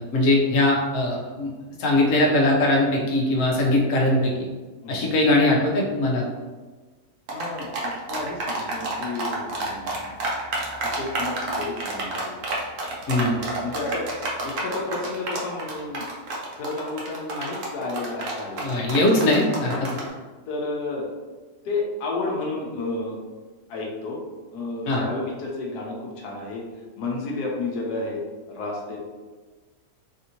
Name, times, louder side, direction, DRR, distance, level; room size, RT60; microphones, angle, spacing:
voice 1, 0.1-1.5 1.8-4.5 4.9-6.2 13.1-13.4 18.6-19.7 24.9-25.0, left 1 dB, 60° left, -2 dB, 1.0 m, -21 dB
voice 2, 4.8-5.1 7.3-10.1 10.8-12.3 13.1-14.1 14.4-16.0 16.6-19.0 19.6-20.0 20.5-21.1 21.6-23.2 23.7-24.2 24.5-26.6 27.0-28.2 28.5-29.0, left 3 dB, 85° left, -2 dB, 1.1 m, -31 dB
sound 1, 7.3-20.1, right 2 dB, 60° right, 1.0 m, -29 dB
3.4 x 2.6 x 2.8 m, 1.3 s
omnidirectional pair, 1.7 m